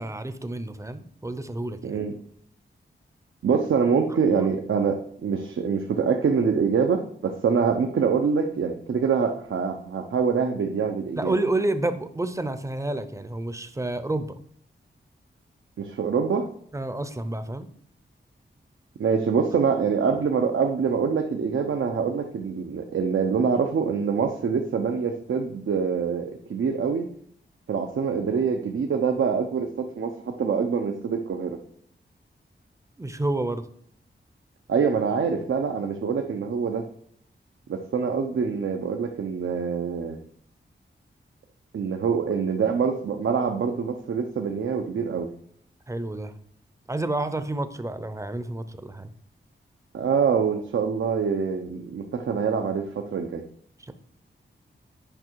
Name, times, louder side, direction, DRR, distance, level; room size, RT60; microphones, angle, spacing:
voice 1, 0.0-2.0 11.1-14.4 16.7-17.7 33.0-33.7 45.9-46.3 46.9-49.1 53.8-53.9, right 2 dB, 15° right, 11 dB, 0.5 m, -29 dB
voice 2, 1.8-2.2 3.4-11.4 15.8-16.5 19.0-27.1 27.7-31.6 34.7-36.8 37.7-40.2 41.7-45.3 49.9-53.4, right 6 dB, 85° right, 4 dB, 0.7 m, -25 dB
8.8 x 5.7 x 4.5 m, 0.64 s
wide cardioid pair, 170°, 20 cm